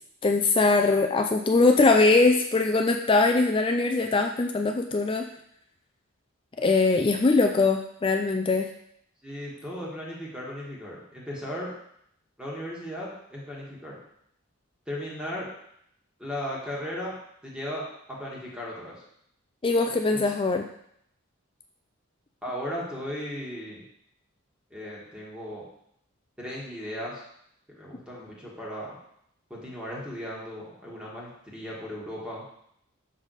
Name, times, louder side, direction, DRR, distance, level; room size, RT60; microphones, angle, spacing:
voice 1, 0.2-5.3 6.6-8.7 19.6-20.6, left 3 dB, 25° left, 4 dB, 0.4 m, -22 dB
voice 2, 9.2-11.7 12.4-14.0 14.9-15.5 16.2-17.1 17.4-19.0 20.1-20.3 22.4-23.8 24.7-25.6 26.4-27.2 27.7-29.0 29.5-32.4, equal, 5° right, -5 dB, 1.6 m, -36 dB
6.4 x 5.4 x 4.1 m, 0.72 s
head